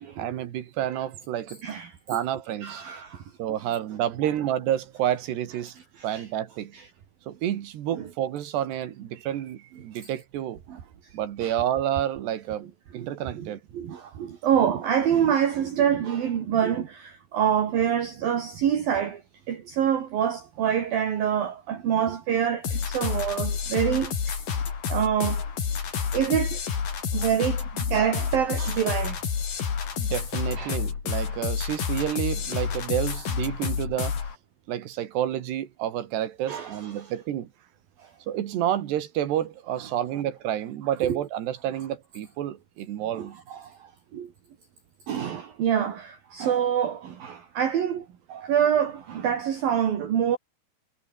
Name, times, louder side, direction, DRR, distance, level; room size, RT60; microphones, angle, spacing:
voice 1, 0.2-1.6 2.1-2.8 3.4-5.8 6.0-6.7 7.3-10.6 11.1-12.7 12.9-13.6 30.0-34.2 34.7-37.5 38.3-43.4, right 11 dB, 75° right, 3.9 m, -29 dB
voice 2, 1.6-2.2 2.6-3.2 6.0-6.3 6.7-6.9 7.9-8.1 10.7-10.8 11.4-11.5 12.9-13.1 13.4-19.2 19.5-24.4 24.9-25.5 26.1-26.6 27.1-29.2 30.6-30.8 36.5-37.1 38.0-38.1 41.0-41.2 43.2-44.3 45.1-50.4, right 9 dB, 60° right, 4.0 m, -26 dB
sound 1, 22.6-34.4, left 6 dB, 55° left, 5.4 m, -29 dB
omnidirectional pair, 4.9 m